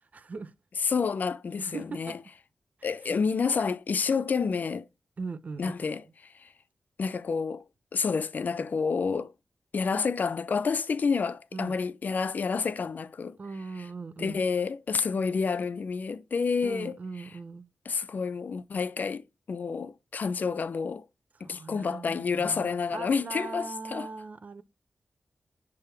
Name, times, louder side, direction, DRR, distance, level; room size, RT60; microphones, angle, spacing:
voice 1, 0.1-0.5 1.6-2.2 2.8-2.9 5.2-5.7 11.5-11.7 13.4-14.4 16.6-17.7 21.4-24.6, right 4 dB, 50° right, 0.7 m, -40 dB
voice 2, 0.8-2.2 2.8-4.9 5.6-6.5 7.0-7.6 7.9-9.3 9.7-13.4 14.2-17.0 17.9-21.1 21.4-24.1, left 5 dB, 60° left, 0.5 m, -29 dB
6.7 x 3.6 x 4.4 m
wide cardioid pair, 80°, 3 cm